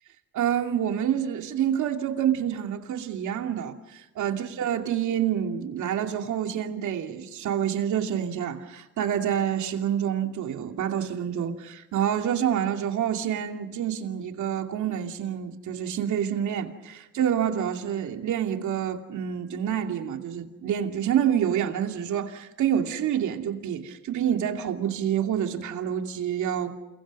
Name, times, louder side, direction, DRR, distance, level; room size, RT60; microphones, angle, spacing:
voice 1, 0.3-26.7, right 9 dB, 75° right, 2.7 m, -27 dB
29.0 x 23.0 x 5.5 m
cardioid pair, 90°, 30 cm